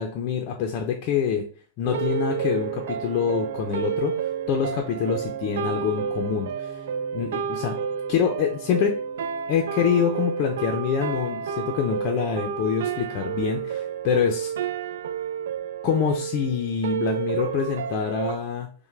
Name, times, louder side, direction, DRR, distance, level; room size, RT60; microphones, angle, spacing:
voice 1, 0.0-1.4 1.8-4.2 4.5-6.8 7.1-7.8 8.1-9.0 9.5-14.5 15.8-18.7, left 7 dB, 30° left, 2 dB, 0.5 m, -25 dB
Piano, 1.8-14.1, right 4 dB, 55° right, 1.6 m, -44 dB
sound 1, 1.9-18.4, right 7 dB, 70° right, 0.3 m, -30 dB
5.6 x 2.1 x 3.2 m, 0.40 s
supercardioid pair, 175°, 0 cm